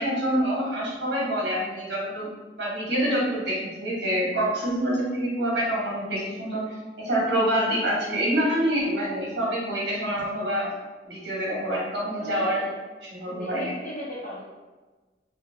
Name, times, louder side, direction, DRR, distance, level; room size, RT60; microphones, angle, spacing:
voice 1, 0.0-2.3 2.6-6.6 7.0-10.6 11.0-12.6 13.1-13.7, equal, 80° right, -5 dB, 1.2 m, -26 dB
voice 2, 12.2-12.7 13.2-14.4, equal, 50° left, -9 dB, 0.7 m, -37 dB
3.3 x 2.2 x 3.2 m, 1.2 s
head